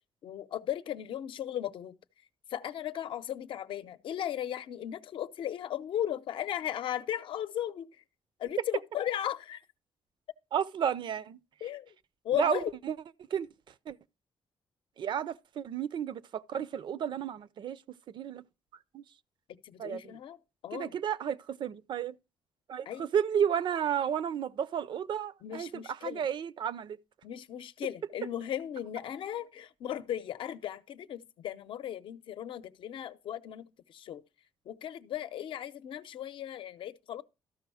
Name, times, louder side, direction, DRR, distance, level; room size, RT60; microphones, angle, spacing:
voice 1, 0.2-2.0 2.5-7.9 8.4-9.6 11.6-11.9 12.2-12.7 19.5-20.4 20.6-20.9 22.9-23.1 25.4-26.2 27.2-34.2 34.7-37.2, left 11 dB, 75° left, 0.7 m, -36 dB
voice 2, 10.5-11.4 12.3-13.0 13.3-13.5 13.9-14.0 15.0-17.8 18.1-18.4 18.9-19.0 19.8-20.1 20.7-22.2 22.7-27.0, right 8 dB, 60° right, 0.5 m, -32 dB
13.0 x 5.3 x 4.8 m
cardioid pair, 100°, 9 cm